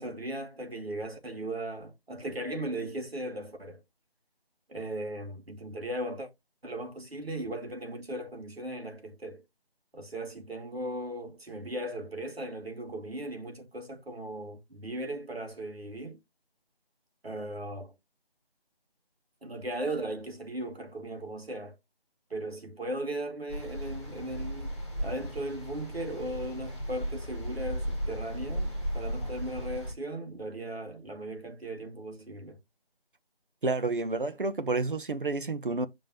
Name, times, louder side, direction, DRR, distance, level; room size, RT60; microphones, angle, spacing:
voice 1, 0.0-3.8 4.7-6.3 6.6-9.4 9.9-16.2 17.2-18.0 19.4-21.8 22.3-32.6, right 1 dB, 75° right, 2.4 m, -37 dB
sound 1, 23.5-29.9, equal, 5° left, 1.5 m, -35 dB
voice 2, 33.6-35.9, right 3 dB, 60° right, 0.9 m, -30 dB
7.3 x 5.4 x 2.9 m
figure-of-eight pair, 165°, 30 cm